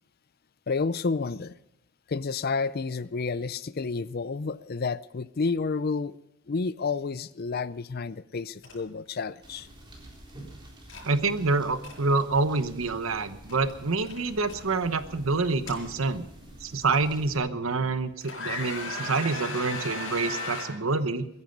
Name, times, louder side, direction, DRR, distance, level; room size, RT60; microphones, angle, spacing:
voice 1, 0.7-1.5 2.1-6.2 6.5-9.7, left 4 dB, 45° left, 0.5 m, -30 dB
sound 1, 8.6-8.7 9.0-9.3 10.9-11.0 11.6-11.9 13.5-13.7 14.0-14.6 15.4-16.3 17.0-17.1 17.7-17.9 18.2-20.6, left 2 dB, 65° left, 7.2 m, -36 dB
sound 2, 9.4-17.4, right 1 dB, 25° right, 3.6 m, -48 dB
voice 2, 11.0-16.3 16.6-21.3, right 3 dB, 75° right, 1.0 m, -27 dB
22.0 x 11.0 x 5.3 m
head